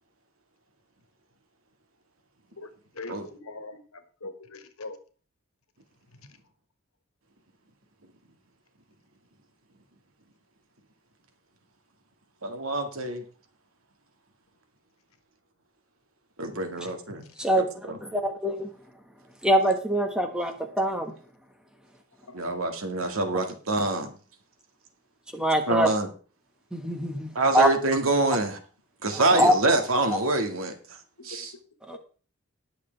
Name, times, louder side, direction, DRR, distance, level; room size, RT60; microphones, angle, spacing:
voice 1, 3.0-3.8 4.2-5.0 17.1-17.2 22.3-22.4 31.2-31.3 31.9-32.0, left 3 dB, 90° left, 8 dB, 1.6 m, -41 dB
voice 2, 12.4-13.2 16.4-17.2 17.5-18.0 22.3-24.2 25.7-26.1 27.4-28.6 29.0-30.7 31.2-31.5, right 2 dB, 80° right, 5 dB, 2.0 m, -26 dB
voice 3, 17.4-18.7 19.4-21.1 25.3-25.9 26.7-27.7 29.1-29.5 31.9-32.0, right 1 dB, 5° right, 5 dB, 1.5 m, -24 dB
19.5 x 6.6 x 3.4 m, 0.38 s
head